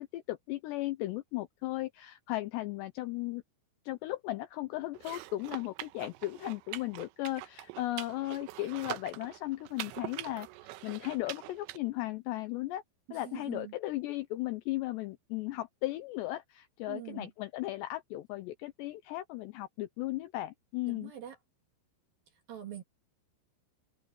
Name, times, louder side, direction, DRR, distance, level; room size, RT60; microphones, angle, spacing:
voice 1, 0.0-3.4 3.9-10.5 10.8-12.8 13.1-21.1, left 17 dB, 80° left, 2.6 m, -36 dB
sound 1, 4.9-11.8, right 17 dB, 80° right, 2.8 m, -44 dB
voice 2, 13.1-13.7 16.9-17.3 20.9-21.4 22.5-22.8, right 12 dB, 55° right, 3.1 m, -44 dB
open air
omnidirectional pair, 5.8 m